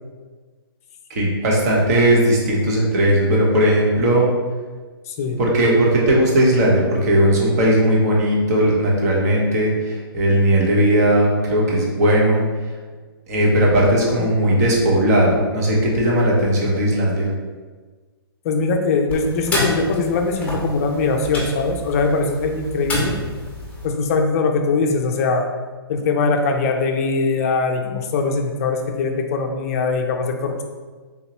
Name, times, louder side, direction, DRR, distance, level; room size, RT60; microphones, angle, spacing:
voice 1, 1.1-4.3 5.4-12.4 13.3-17.3, right 1 dB, 40° right, -3 dB, 0.9 m, -17 dB
voice 2, 5.1-5.4 18.4-23.2 23.8-25.5 25.9-30.6, left 4 dB, 35° left, 3 dB, 0.4 m, -21 dB
sound 1, 19.1-23.9, left 1 dB, 10° left, 0.9 m, -28 dB
3.5 x 2.9 x 2.9 m, 1.4 s
hypercardioid pair, 145°, 13 cm